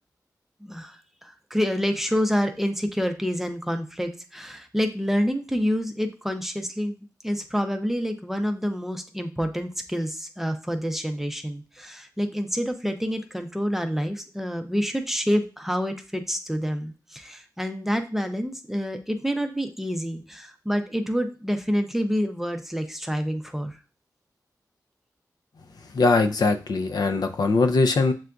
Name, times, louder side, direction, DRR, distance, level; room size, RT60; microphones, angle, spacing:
voice 1, 0.6-23.8, equal, 5° right, 6 dB, 0.5 m, -28 dB
voice 2, 25.9-28.1, left 3 dB, 70° left, 7 dB, 0.5 m, -21 dB
7.5 x 2.5 x 2.2 m, 0.35 s
wide cardioid pair, 145°, 7 cm